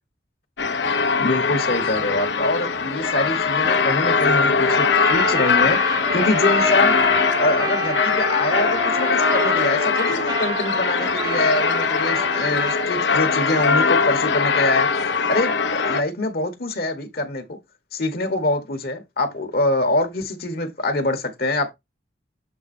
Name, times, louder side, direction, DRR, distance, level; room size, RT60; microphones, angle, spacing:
sound 1, 0.6-16.0, left 5 dB, 85° left, 0.9 m, -21 dB
voice 1, 1.1-5.8 6.1-7.0 7.4-14.9 15.2-17.5 17.9-21.7, left 2 dB, 55° left, 1.3 m, -24 dB
Trumpet, 4.6-12.8, right 1 dB, 25° right, 1.0 m, -28 dB
7.5 x 3.5 x 4.3 m
head